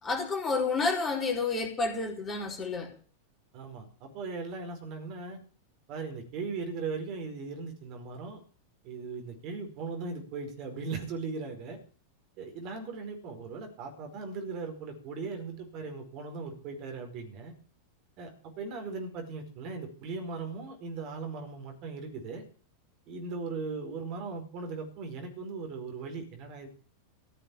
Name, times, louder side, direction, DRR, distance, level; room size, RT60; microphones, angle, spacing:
voice 1, 0.0-2.9, left 3 dB, 20° left, 2 dB, 4.1 m, -30 dB
voice 2, 3.5-5.4 5.9-8.4 8.8-11.8 12.4-17.5 18.2-22.4 23.1-26.7, right 4 dB, 40° right, 4 dB, 5.0 m, -38 dB
15.0 x 7.6 x 8.6 m, 0.40 s
figure-of-eight pair, 90°, 0 cm